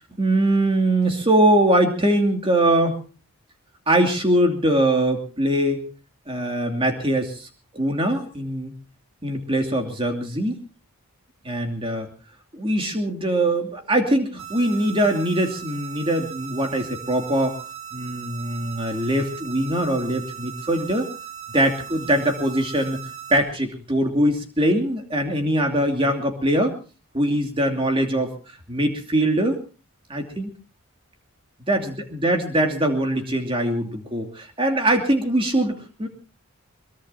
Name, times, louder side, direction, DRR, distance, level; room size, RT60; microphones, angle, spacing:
voice 1, 0.2-3.0 3.9-5.8 6.3-7.5 7.7-8.7 9.2-10.6 11.4-12.1 12.5-17.6 17.9-21.1 21.5-23.0 23.3-26.7 27.1-28.3 28.7-29.6 30.1-30.5 31.7-36.1, right 1 dB, 25° right, 3 dB, 2.7 m, -22 dB
sound 1, 14.4-23.4, right 10 dB, 60° right, 3.4 m, -38 dB
22.5 x 22.0 x 2.8 m, 0.34 s
head